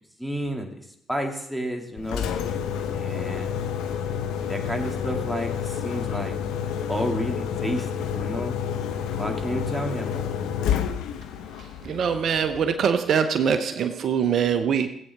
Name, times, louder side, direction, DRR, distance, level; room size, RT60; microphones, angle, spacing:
voice 1, 0.2-0.7 1.1-2.3 2.9-3.6 4.5-6.4 6.9-8.6 9.1-10.3, equal, ahead, 2 dB, 2.3 m, -31 dB
Engine, 2.0-12.9, left 8 dB, 75° left, 0.9 m, -29 dB
voice 2, 11.8-14.9, right 7 dB, 55° right, 9 dB, 0.8 m, -23 dB
16.5 x 8.4 x 3.5 m, 0.73 s
hypercardioid pair, 55°, 0 cm